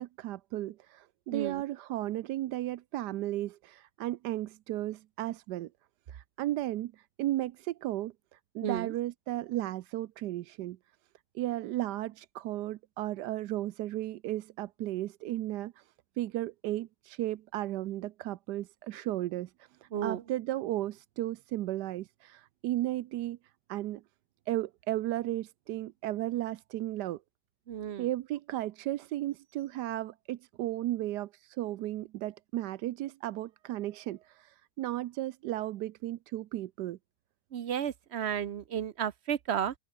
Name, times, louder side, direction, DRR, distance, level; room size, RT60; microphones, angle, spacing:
voice 1, 0.0-5.7 6.1-10.8 11.3-15.8 16.2-23.4 23.7-24.0 24.5-27.2 28.0-37.0, right 15 dB, 85° right, 1.2 m, -35 dB
voice 2, 1.3-1.6 8.6-8.9 19.9-20.2 27.7-28.1 37.5-39.7, right 9 dB, 55° right, 0.8 m, -33 dB
open air
omnidirectional pair, 1.8 m